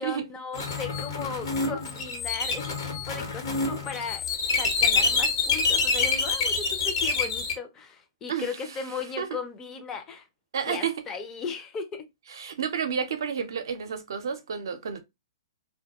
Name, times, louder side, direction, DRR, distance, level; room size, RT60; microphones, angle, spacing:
voice 1, 0.0-4.3 4.5-10.3 10.7-12.1, left 5 dB, 20° left, 0.5 m, -36 dB
sound 1, 0.5-7.5, left 4 dB, 60° left, 0.9 m, -26 dB
voice 2, 10.5-10.9 12.3-15.0, right 7 dB, 70° right, 0.5 m, -30 dB
2.2 x 2.2 x 2.8 m
hypercardioid pair, 130°, 2 cm